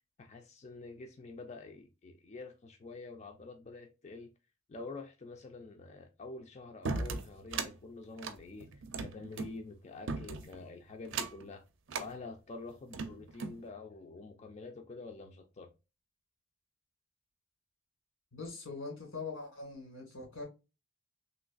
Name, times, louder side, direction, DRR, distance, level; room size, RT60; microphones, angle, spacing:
voice 1, 0.2-4.3 4.7-8.7 9.0-11.6 11.9-15.7, left 3 dB, 35° left, 0.4 m, -47 dB
sound 1, 6.9-7.7 8.2-9.5 10.1-10.6 11.1-11.5 11.9-12.1 12.7-13.6, right 4 dB, 65° right, 0.5 m, -37 dB
voice 2, 18.3-20.4, left 3 dB, 90° left, 2.0 m, -42 dB
3.1 x 3.0 x 2.4 m
head